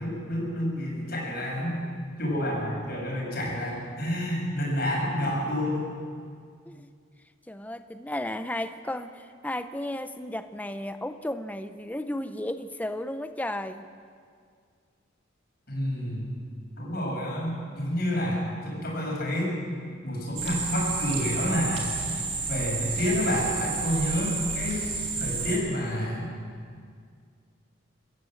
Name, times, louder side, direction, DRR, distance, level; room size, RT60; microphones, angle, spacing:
voice 1, 0.0-1.8 2.2-5.8 15.7-16.4 16.8-19.5 20.0-24.9 25.2-26.3, equal, 50° left, -2 dB, 6.9 m, -29 dB
voice 2, 7.5-13.9, left 1 dB, 10° left, 9 dB, 0.6 m, -34 dB
sound 1, 20.4-25.6, right 4 dB, 30° right, 3.5 m, -31 dB
26.0 x 14.5 x 7.8 m, 2.1 s
head